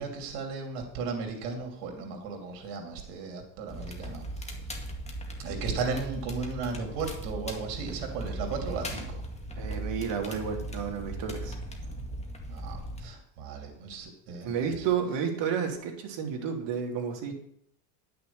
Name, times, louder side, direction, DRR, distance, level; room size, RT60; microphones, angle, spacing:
voice 1, 0.0-4.5 5.4-9.2 12.5-14.8, right 4 dB, 85° right, 3 dB, 2.9 m, -35 dB
Crackle, 3.7-13.1, right 1 dB, 15° left, 2.0 m, -38 dB
voice 2, 9.6-11.5 14.4-17.3, right 7 dB, 60° right, 2 dB, 3.0 m, -31 dB
11.0 x 6.7 x 6.9 m, 0.71 s
supercardioid pair, 105°, 49 cm